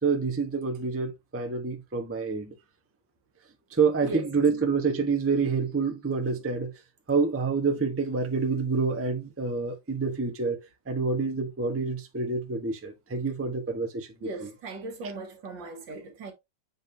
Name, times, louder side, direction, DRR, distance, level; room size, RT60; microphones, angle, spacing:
voice 1, 0.0-2.5 3.7-6.7 7.1-10.6 10.9-14.5, right 4 dB, 10° right, 0.7 m, -27 dB
voice 2, 14.2-16.3, right 2 dB, 75° right, 2.2 m, -38 dB
7.4 x 5.4 x 2.7 m
omnidirectional pair, 2.0 m